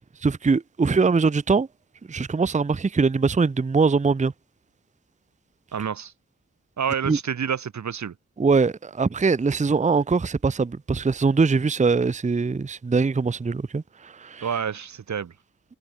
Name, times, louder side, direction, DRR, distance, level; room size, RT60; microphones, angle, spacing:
voice 1, 0.2-1.7 2.1-4.3 7.0-7.2 8.4-14.5, right 4 dB, 25° right, 0.6 m, -22 dB
voice 2, 5.7-6.1 6.8-8.1 14.4-15.3, right 7 dB, 60° right, 0.8 m, -28 dB
cardioid pair, 50°, 32 cm